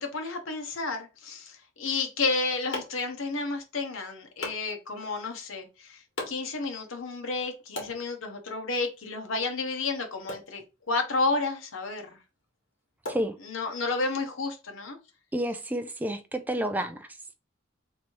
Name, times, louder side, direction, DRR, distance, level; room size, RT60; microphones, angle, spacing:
voice 1, 0.0-6.0 6.3-10.6 10.9-12.0 13.4-15.0, left 3 dB, 80° left, 0.9 m, -31 dB
sound 1, 2.0-14.0, left 2 dB, 65° left, 1.6 m, -45 dB
voice 2, 15.3-17.1, right 1 dB, 10° right, 0.4 m, -30 dB
3.0 x 2.7 x 4.5 m
head